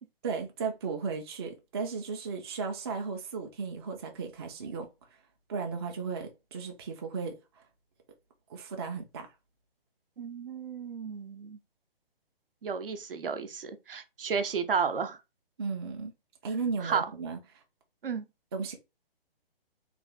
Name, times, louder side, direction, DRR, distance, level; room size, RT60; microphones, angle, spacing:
voice 1, 0.2-4.9 5.5-7.6 8.5-9.3 15.6-16.1 16.4-17.6 18.5-18.8, right 5 dB, 25° right, 0.5 m, -35 dB
voice 2, 10.2-11.6 12.6-15.2 16.8-17.0 18.0-18.2, right 6 dB, 65° right, 0.7 m, -32 dB
3.4 x 2.5 x 3.6 m
figure-of-eight pair, 140°, 30 cm